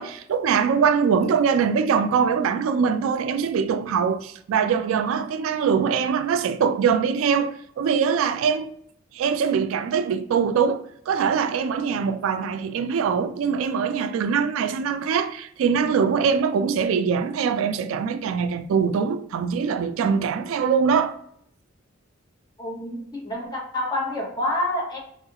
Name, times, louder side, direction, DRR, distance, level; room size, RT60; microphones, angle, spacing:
voice 1, 0.0-8.7 9.1-21.2, right 6 dB, 80° right, 0.3 m, -23 dB
voice 2, 22.6-25.0, left 1 dB, 20° left, 0.7 m, -28 dB
3.7 x 2.3 x 2.8 m
head